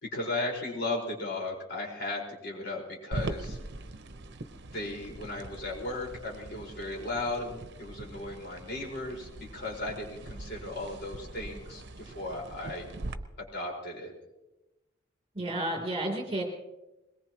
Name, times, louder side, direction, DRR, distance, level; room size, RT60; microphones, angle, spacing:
voice 1, 0.0-3.6 4.7-12.9 13.4-14.1, left 2 dB, 55° left, -2 dB, 5.0 m, -36 dB
sound 1, 3.1-13.1, right 2 dB, 60° right, 0.9 m, -42 dB
voice 2, 15.4-16.4, right 1 dB, 30° right, 2 dB, 3.4 m, -31 dB
22.0 x 21.5 x 3.1 m, 0.98 s
head